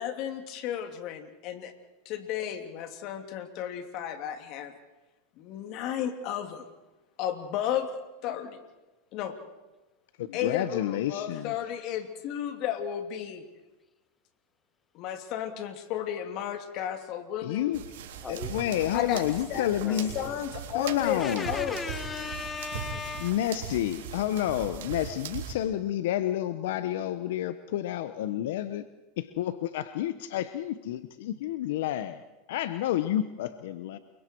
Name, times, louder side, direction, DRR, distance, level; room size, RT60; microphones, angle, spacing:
voice 1, 0.0-1.7 2.0-4.7 5.4-6.7 7.2-7.9 8.2-8.6 9.1-9.4 10.3-13.4 14.9-17.7 18.9-19.2 19.5-21.8, left 10 dB, 55° left, 7 dB, 2.9 m, -33 dB
voice 2, 10.2-11.5 17.4-17.8 18.3-20.1 20.7-21.5 23.2-28.8 29.2-32.2 32.5-34.0, left 12 dB, 75° left, 12 dB, 1.0 m, -30 dB
sound 1, 17.7-25.5, right 8 dB, 80° right, 3.5 m, -40 dB
voice 3, 18.2-20.3 21.2-23.4, left 5 dB, 20° left, 10 dB, 1.5 m, -38 dB
29.5 x 23.5 x 4.7 m, 1.1 s
hypercardioid pair, 110°, 0 cm